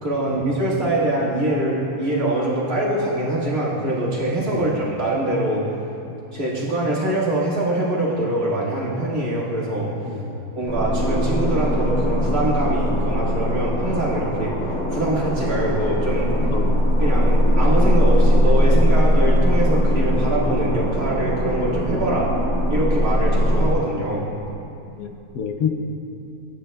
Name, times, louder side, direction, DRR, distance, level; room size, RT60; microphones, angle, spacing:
voice 1, 0.0-5.6 6.3-9.9 10.5-14.5 14.9-16.3 17.0-22.3 22.7-24.3, right 1 dB, 70° right, -7 dB, 2.3 m, -23 dB
voice 2, 10.0-10.4 16.4-16.9 21.9-22.1 25.0-25.7, left 7 dB, 70° left, 3 dB, 1.1 m, -28 dB
sound 1, 10.7-23.7, equal, 10° left, 2.1 m, -20 dB
15.0 x 9.0 x 2.3 m, 2.7 s
omnidirectional pair, 1.6 m